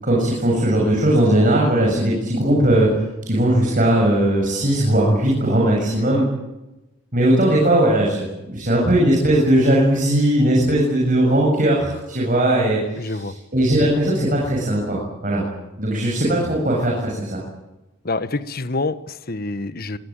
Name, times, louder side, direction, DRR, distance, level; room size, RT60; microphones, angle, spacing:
voice 1, 0.0-2.9 3.2-6.2 7.1-15.4 15.8-17.4, right 1 dB, 45° right, -2 dB, 7.5 m, -18 dB
voice 2, 13.0-13.3 18.0-20.0, left 3 dB, 50° left, 12 dB, 1.3 m, -27 dB
27.0 x 18.5 x 9.1 m, 0.99 s
head